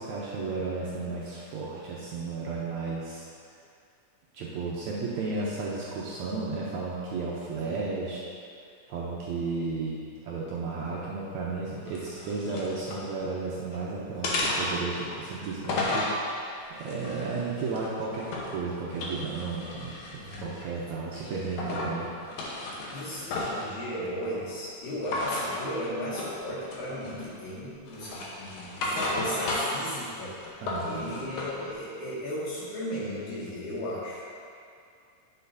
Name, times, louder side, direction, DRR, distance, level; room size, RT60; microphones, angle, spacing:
voice 1, 0.0-3.2 4.3-8.2 8.9-22.1 30.6-31.3, right 4 dB, 75° right, -5 dB, 1.8 m, -33 dB
sound 1, 11.9-13.0 13.5-13.8 14.2-16.2 16.8-18.6 18.9-20.7 21.1-21.9 22.2-23.7 25.0-25.5 26.1-26.4 26.7-27.4 27.9-29.9 30.2-31.5, left 2 dB, 65° left, 2.2 m, -33 dB
voice 2, 20.2-20.5 21.6-21.9 22.9-30.4 30.8-34.3, equal, 85° left, -9 dB, 3.8 m, -36 dB
9.9 x 6.7 x 2.7 m, 2.4 s
omnidirectional pair, 3.9 m